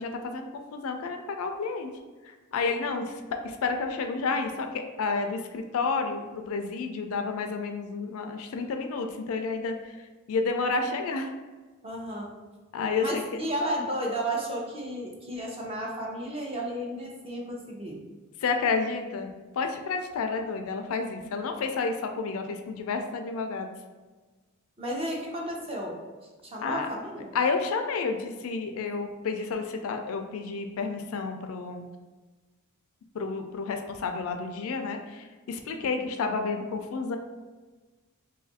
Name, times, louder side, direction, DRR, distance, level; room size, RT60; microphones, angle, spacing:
voice 1, 0.0-1.9 2.5-3.0 3.4-9.7 10.3-11.3 12.7-13.4 18.4-19.3 19.6-23.7 26.6-26.9 27.3-31.9 33.1-37.2, left 4 dB, 70° left, 5 dB, 0.4 m, -30 dB
voice 2, 11.8-12.3 13.0-18.0 24.8-26.0 26.4-27.3 35.8-36.1, right 1 dB, 25° right, -2 dB, 0.7 m, -33 dB
2.7 x 2.4 x 4.0 m, 1.3 s
head